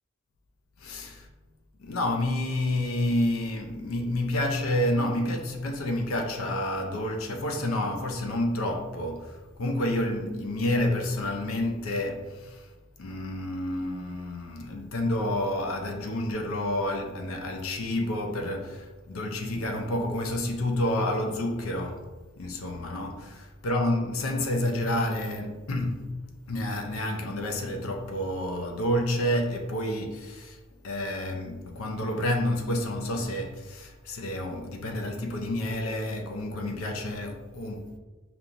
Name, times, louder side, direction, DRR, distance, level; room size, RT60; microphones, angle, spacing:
voice 1, 0.8-1.3 1.8-12.7 13.0-22.1 22.4-26.1 26.5-30.6 30.8-38.0, left 1 dB, 80° left, 0.6 m, -29 dB
5.2 x 2.9 x 2.5 m
head